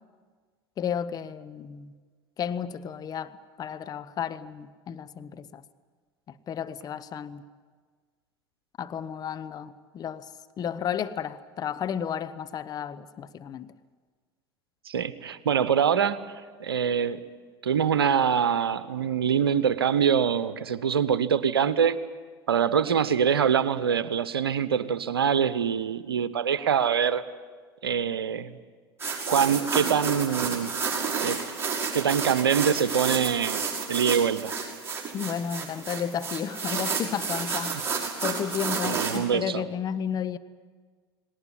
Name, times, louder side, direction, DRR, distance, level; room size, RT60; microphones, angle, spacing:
voice 1, 0.8-1.9 2.4-5.6 6.5-7.4 8.8-10.3 10.6-13.7 35.1-37.8 38.2-40.4, left 8 dB, 30° left, 0.9 m, -32 dB
voice 2, 14.9-16.3 16.6-17.2 17.6-22.0 22.5-27.2 27.8-28.6 29.3-30.8 31.2-31.4 31.9-33.6 33.9-34.5 38.8-39.6, right 7 dB, 75° right, 1.0 m, -24 dB
sound 1, 29.0-39.2, right 5 dB, 20° right, 6.0 m, -31 dB
19.0 x 19.0 x 9.9 m
figure-of-eight pair, 80°, 13 cm